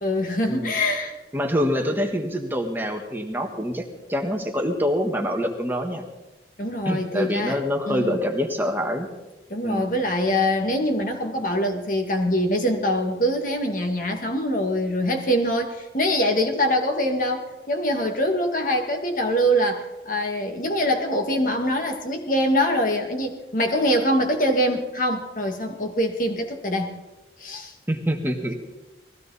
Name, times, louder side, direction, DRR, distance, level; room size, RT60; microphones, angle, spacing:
voice 1, 0.0-1.2 6.6-7.6 7.9-8.2 9.5-26.9 27.4-27.7, equal, 50° left, 4 dB, 2.2 m, -24 dB
voice 2, 1.3-3.8 4.1-6.0 6.8-9.1 9.6-9.9 27.9-28.5, equal, 10° right, 3 dB, 1.6 m, -25 dB
20.5 x 16.0 x 4.2 m, 1.1 s
head